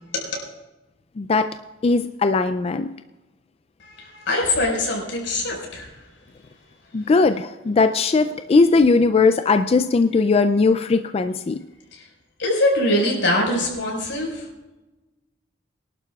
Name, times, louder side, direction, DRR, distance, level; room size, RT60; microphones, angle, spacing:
voice 1, 1.2-1.5 1.8-2.9 6.9-11.6, left 4 dB, 35° left, 10 dB, 0.3 m, -19 dB
voice 2, 3.8-5.9 11.9-12.1 12.4-14.5, left 1 dB, 85° left, -1 dB, 5.0 m, -23 dB
23.0 x 12.0 x 2.4 m, 1.1 s
head